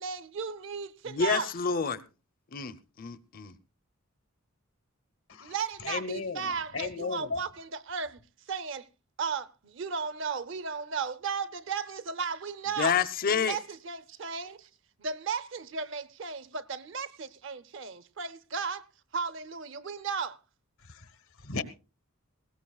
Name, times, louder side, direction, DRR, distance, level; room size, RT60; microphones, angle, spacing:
voice 1, 0.0-1.5 5.4-8.2 8.5-8.9 9.2-13.0 13.3-14.7 15.0-18.8 19.1-20.4, right 5 dB, 60° right, 0.7 m, -35 dB
voice 2, 1.1-2.0 2.5-3.5 12.8-13.6, left 6 dB, 40° left, 0.6 m, -28 dB
voice 3, 5.8-7.4 21.4-21.6, left 4 dB, 80° left, 1.2 m, -34 dB
19.5 x 17.0 x 2.3 m
head